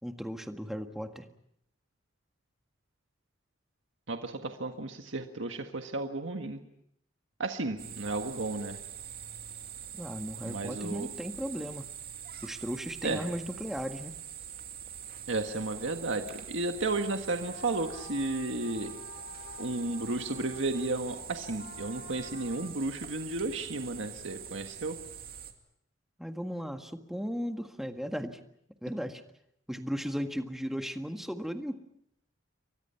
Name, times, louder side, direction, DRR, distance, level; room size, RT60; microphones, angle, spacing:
voice 1, 0.0-1.3 10.0-11.8 12.4-14.1 26.2-28.4 28.8-29.2 29.7-31.8, equal, ahead, 5 dB, 1.7 m, -36 dB
voice 2, 4.1-6.6 7.4-8.8 10.4-11.1 13.0-13.3 15.3-18.9 19.6-25.0, right 2 dB, 75° right, 5 dB, 1.7 m, -33 dB
sound 1, 7.8-25.5, right 9 dB, 50° right, 2.6 m, -44 dB
sound 2, 17.4-22.6, left 3 dB, 50° left, 7.5 m, -49 dB
29.5 x 23.5 x 5.8 m, 0.74 s
head